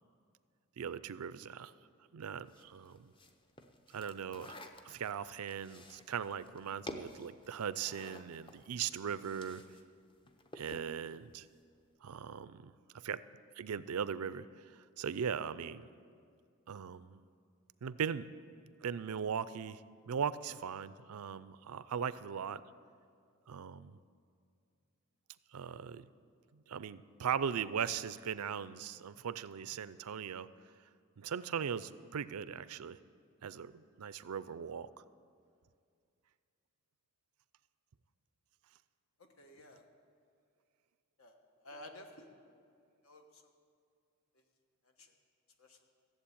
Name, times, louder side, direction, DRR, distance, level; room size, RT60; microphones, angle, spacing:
voice 1, 0.8-1.7 2.1-3.1 3.9-4.6 4.8-9.6 10.5-11.5 12.0-13.2 13.5-15.9 16.7-17.2 17.8-18.3 18.8-19.8 20.1-22.6 23.5-24.0 25.5-26.1 26.5-30.5 31.2-33.0 33.4-34.9, right 7 dB, 85° right, 16 dB, 0.4 m, -39 dB
sound 1, 2.5-9.8 10.1-11.0, left 1 dB, 20° left, 0.6 m, -51 dB
voice 2, 39.2-39.8 41.2-41.4 41.6-42.3 43.0-43.4 45.0-45.1 45.6-45.8, left 1 dB, 70° left, 4 dB, 1.4 m, -53 dB
14.5 x 7.7 x 8.6 m, 2.2 s
head